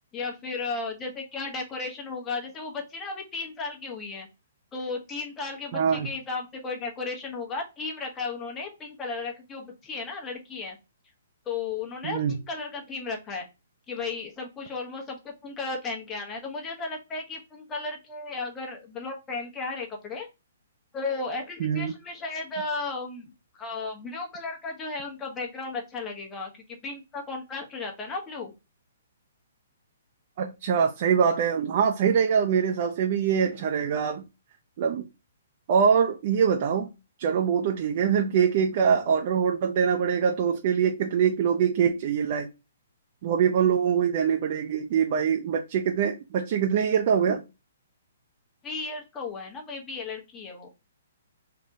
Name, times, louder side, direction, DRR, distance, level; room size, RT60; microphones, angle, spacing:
voice 1, 0.1-4.3 4.7-10.8 11.5-13.5 13.9-20.3 20.9-23.3 23.5-28.5 48.6-50.7, left 3 dB, 20° left, 0.9 m, -34 dB
voice 2, 5.7-6.1 12.0-12.4 21.6-21.9 30.4-34.2 34.8-35.0 35.7-36.9 37.2-42.5 43.2-47.4, right 7 dB, 45° right, 0.5 m, -24 dB
3.4 x 2.2 x 2.7 m
figure-of-eight pair, 125°, 0 cm